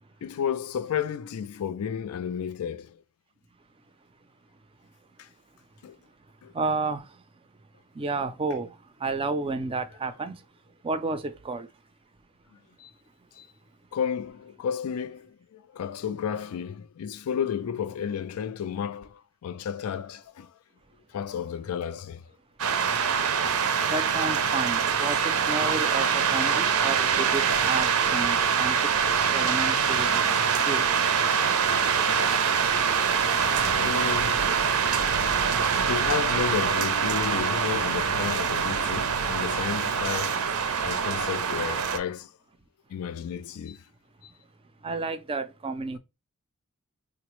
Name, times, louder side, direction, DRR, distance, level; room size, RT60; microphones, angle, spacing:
voice 1, 0.2-2.9 5.8-6.0 6.4-6.5 12.8-12.9 13.4-13.5 13.9-20.5 21.1-22.2 33.7-34.5 35.9-40.5 40.8-42.3 42.9-43.8, left 8 dB, 80° left, 0.4 m, -32 dB
voice 2, 6.5-7.2 7.9-10.5 10.8-11.7 23.9-30.9 44.8-46.0, right 3 dB, 25° right, 0.4 m, -32 dB
sound 1, 22.6-42.0, right 6 dB, 75° right, 0.5 m, -24 dB
3.8 x 2.1 x 3.0 m
head